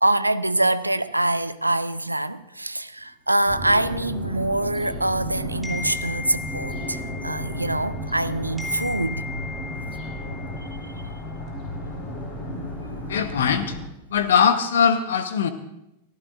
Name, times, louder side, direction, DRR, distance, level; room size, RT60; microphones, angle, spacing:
voice 1, 0.0-9.3 11.3-11.4 12.2-12.7, right 1 dB, 85° right, 0.5 m, -25 dB
sound 1, 3.5-13.8, left 1 dB, 35° left, 4.0 m, -34 dB
sound 2, 5.6-8.2 8.6-11.1, left 4 dB, 5° left, 2.6 m, -37 dB
voice 2, 13.1-13.8 14.1-15.5, left 7 dB, 65° left, 1.0 m, -20 dB
23.5 x 15.0 x 2.5 m
figure-of-eight pair, 90°, 0 cm